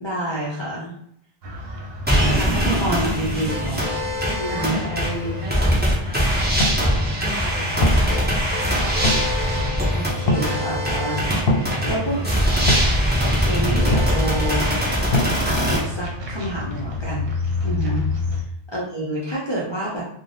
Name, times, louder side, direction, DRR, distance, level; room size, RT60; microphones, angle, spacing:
voice 1, 0.0-0.9 2.2-3.8 4.3-4.8 9.9-11.3 11.8-12.2 13.2-14.7 15.4-17.3 17.6-18.0 18.7-20.0, right 1 dB, 35° left, -6 dB, 0.5 m, -28 dB
sound 1, 1.4-18.4, left 2 dB, 75° right, 0.8 m, -30 dB
sound 2, 2.1-15.8, equal, 10° right, 0.5 m, -22 dB
voice 2, 4.5-6.6 7.1-8.2 11.2-12.1 17.8-18.0, equal, 35° right, -5 dB, 0.9 m, -34 dB
sound 3, 6.5-15.4, left 2 dB, 70° left, 0.7 m, -28 dB
3.2 x 2.1 x 2.6 m, 0.70 s
omnidirectional pair, 1.0 m